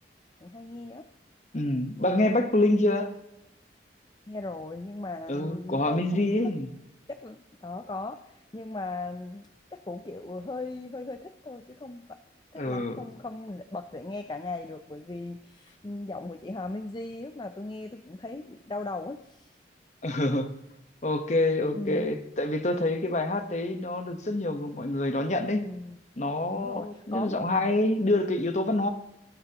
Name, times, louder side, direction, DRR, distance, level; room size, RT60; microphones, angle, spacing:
voice 1, 0.4-1.1 4.3-6.5 7.1-12.2 12.5-19.6 21.7-22.2 25.5-26.0 26.5-27.4 28.8-28.9, left 2 dB, 25° left, 8 dB, 0.5 m, -38 dB
voice 2, 1.5-3.1 5.3-6.7 12.6-13.0 20.0-20.5 21.0-25.6 26.2-28.9, left 2 dB, 40° left, 8 dB, 1.1 m, -26 dB
19.5 x 14.0 x 2.9 m, 0.87 s
head